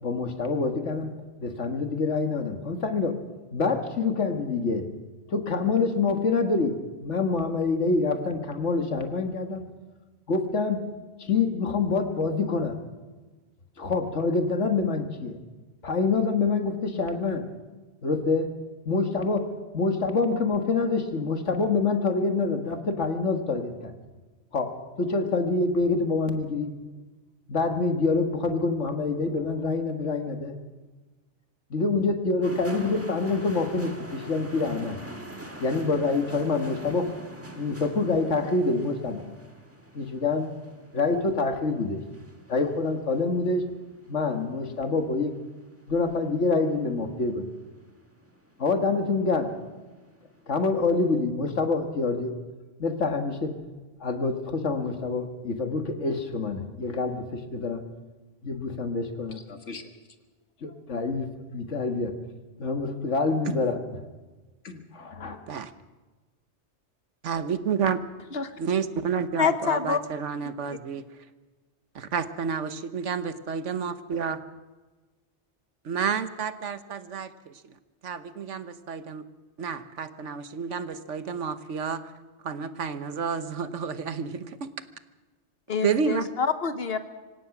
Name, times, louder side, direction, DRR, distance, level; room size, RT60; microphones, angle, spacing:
voice 1, 0.0-1.1 1.4-3.1 3.5-4.8 5.3-9.6 10.3-10.8 11.2-12.8 13.8-15.4 15.8-17.4 18.0-18.5 18.9-19.5 19.7-23.9 24.5-26.7 27.5-30.6 31.7-35.0 35.6-37.1 37.5-39.2 39.9-40.5 40.9-42.0 42.5-43.6 44.1-45.3 45.9-47.4 48.6-49.5 50.5-52.3 52.8-53.5 54.0-57.8 58.4-59.8 60.6-62.1 62.6-63.8 64.6-65.4, left 3 dB, 80° left, 6 dB, 2.0 m, -26 dB
sound 1, 32.4-51.2, right 1 dB, 10° right, 1.7 m, -46 dB
voice 2, 67.2-68.0 68.6-71.1 71.9-74.4 75.8-77.7 78.0-79.3 79.6-82.1 82.4-84.7 85.8-86.3, right 6 dB, 80° right, 11 dB, 1.4 m, -30 dB
voice 3, 69.4-70.0 85.7-87.0, left 6 dB, 55° left, 10 dB, 1.3 m, -26 dB
25.5 x 16.5 x 6.0 m, 1.3 s
omnidirectional pair, 1.2 m